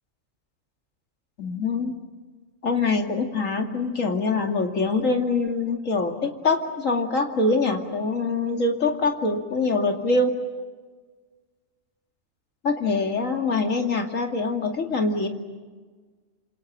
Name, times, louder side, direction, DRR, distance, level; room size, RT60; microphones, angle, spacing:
voice 1, 1.4-2.0 2.6-10.4 12.6-15.3, left 3 dB, 85° left, 3 dB, 2.9 m, -24 dB
28.0 x 27.0 x 7.6 m, 1.4 s
omnidirectional pair, 1.3 m